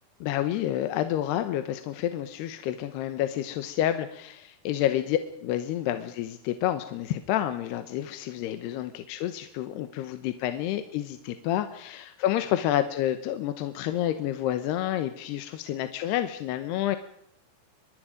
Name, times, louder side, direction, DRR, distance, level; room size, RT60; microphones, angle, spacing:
voice 1, 0.2-17.0, left 12 dB, 75° left, 9 dB, 2.9 m, -29 dB
25.0 x 21.0 x 5.1 m, 0.71 s
omnidirectional pair, 5.0 m